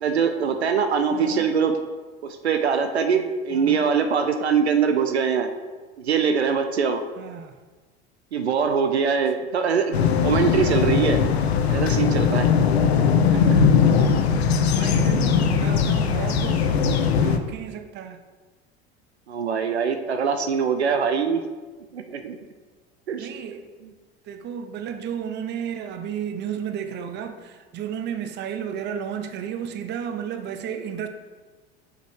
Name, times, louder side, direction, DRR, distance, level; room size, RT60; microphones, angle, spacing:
voice 1, 0.0-1.7 2.2-5.5 6.0-7.0 8.3-9.9 10.2-11.2 11.7-12.5 13.3-13.6 19.3-21.4 21.9-22.4 23.1-23.3, right 6 dB, 90° right, 0.5 m, -23 dB
voice 2, 1.1-1.5 3.5-3.9 7.2-7.6 14.6-18.2 23.2-23.7 24.2-31.1, right 8 dB, 35° right, 0.6 m, -33 dB
sound 1, 9.9-17.4, left 6 dB, 80° left, 0.5 m, -20 dB
6.4 x 5.0 x 3.2 m
figure-of-eight pair, 75°, 32 cm